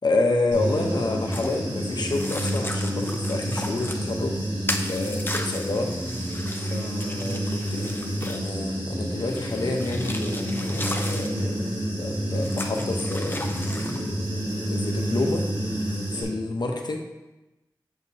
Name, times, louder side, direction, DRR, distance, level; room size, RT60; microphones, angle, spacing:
voice 1, 0.0-4.4 4.8-6.0 6.7-14.4 14.6-15.5 16.1-17.0, left 2 dB, 65° left, 2 dB, 0.9 m, -29 dB
Human voice / Buzz, 0.5-16.2, right 1 dB, 65° right, 2.0 m, -29 dB
sound 1, 1.3-1.6 2.1-4.0 4.7-8.5 9.3-11.3 12.3-14.0, left 1 dB, 25° left, 0.7 m, -36 dB
6.5 x 6.3 x 2.9 m, 1.0 s
cardioid pair, 45°, 8 cm